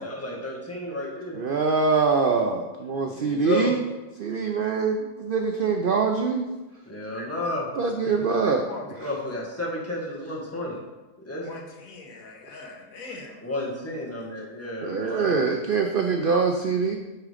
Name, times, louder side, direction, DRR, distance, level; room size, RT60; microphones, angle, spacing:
voice 1, 0.0-1.4 3.1-3.7 6.9-7.7 8.0-8.1 9.0-10.8 11.2-11.5 13.4-15.4, left 1 dB, 10° left, -4 dB, 1.5 m, -32 dB
voice 2, 1.3-3.8 4.2-6.5 7.1-7.3 7.8-8.6 14.8-17.0, right 4 dB, 65° right, 4 dB, 0.5 m, -24 dB
voice 3, 8.6-9.4 11.4-13.4, left 3 dB, 70° left, 1 dB, 1.5 m, -42 dB
8.7 x 3.7 x 5.0 m, 1.1 s
omnidirectional pair, 1.5 m